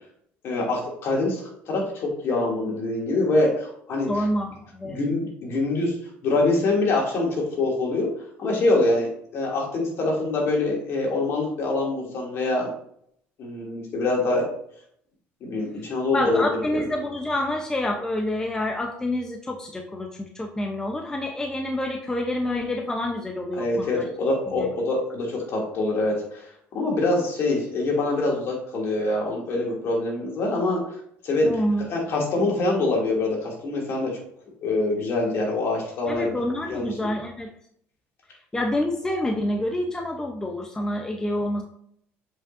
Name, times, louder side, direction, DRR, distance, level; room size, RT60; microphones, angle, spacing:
voice 1, 0.4-4.1 4.8-5.9 6.2-8.1 8.4-12.7 13.4-14.5 15.4-16.4 16.7-16.8 23.6-31.0 31.2-31.6 31.9-34.2 34.6-36.3 36.7-36.9, left 2 dB, 55° left, -2 dB, 2.7 m, -25 dB
voice 2, 4.1-5.0 16.1-24.1 24.6-24.7 31.4-31.9 36.1-37.5 38.5-41.6, left 1 dB, 15° left, 3 dB, 0.8 m, -27 dB
7.5 x 5.4 x 2.7 m, 0.68 s
cardioid pair, 105°, 5 cm